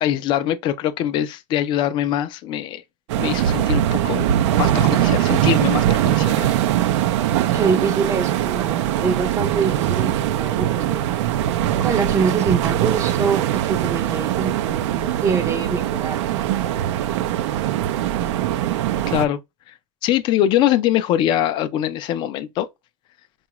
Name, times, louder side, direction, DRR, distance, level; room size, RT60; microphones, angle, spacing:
voice 1, 0.0-2.8 3.2-4.3 4.6-6.5 19.1-19.4 19.7-19.8 20.0-22.7, left 11 dB, 30° left, 0.4 m, -22 dB
sound 1, 3.1-19.3, right 12 dB, 80° right, 0.5 m, -21 dB
voice 2, 7.5-11.1 11.8-16.2, right 5 dB, 20° right, 0.6 m, -25 dB
4.7 x 2.3 x 3.0 m
supercardioid pair, 165°, 15 cm